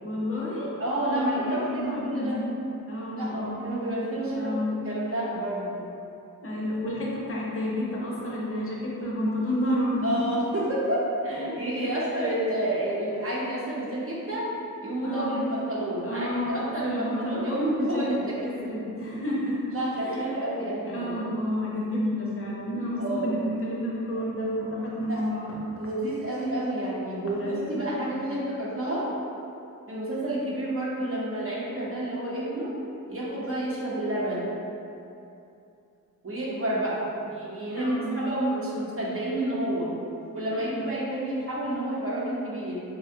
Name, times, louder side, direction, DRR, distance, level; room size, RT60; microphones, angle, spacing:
voice 1, 0.0-0.7 1.0-2.5 2.9-3.6 4.3-4.8 6.4-10.4 11.3-11.4 11.8-12.1 15.0-15.5 16.0-19.8 20.0-20.2 20.9-25.6 27.3-28.3 37.7-38.2 40.5-41.0, equal, 40° left, -5 dB, 0.6 m, -30 dB
voice 2, 0.8-2.4 3.1-4.6 4.8-5.9 10.0-14.5 14.8-18.5 19.7-21.2 23.0-23.3 25.0-25.2 25.8-29.1 29.9-32.7 33.1-34.5 36.2-39.9 40.3-42.8, right 1 dB, 40° right, -7 dB, 0.7 m, -29 dB
3.3 x 2.1 x 2.7 m, 2.7 s
wide cardioid pair, 80°, 35 cm